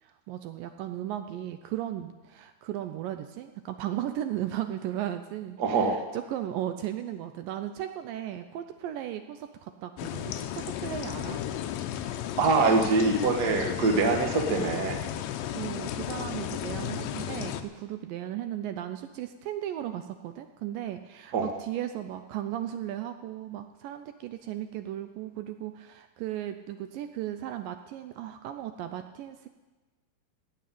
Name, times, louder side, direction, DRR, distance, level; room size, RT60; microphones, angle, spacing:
voice 1, 0.0-11.4 15.2-29.5, right 12 dB, 80° right, 8 dB, 2.0 m, -36 dB
voice 2, 5.6-6.0 12.4-15.0 21.3-21.5, right 3 dB, 60° right, 3 dB, 1.0 m, -24 dB
sound 1, 10.0-17.6, left 11 dB, 80° left, 2.4 m, -34 dB
16.5 x 6.9 x 9.0 m, 1.2 s
omnidirectional pair, 4.3 m